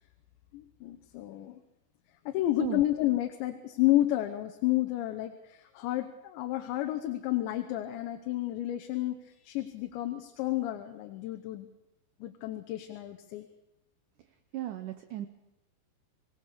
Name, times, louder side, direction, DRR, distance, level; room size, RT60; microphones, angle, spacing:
voice 1, 0.5-1.6 2.3-11.7 12.2-13.5, left 15 dB, 90° left, 5 dB, 3.3 m, -31 dB
voice 2, 14.5-15.3, right 13 dB, 90° right, 9 dB, 1.8 m, -35 dB
26.0 x 18.5 x 6.6 m, 0.91 s
omnidirectional pair, 5.0 m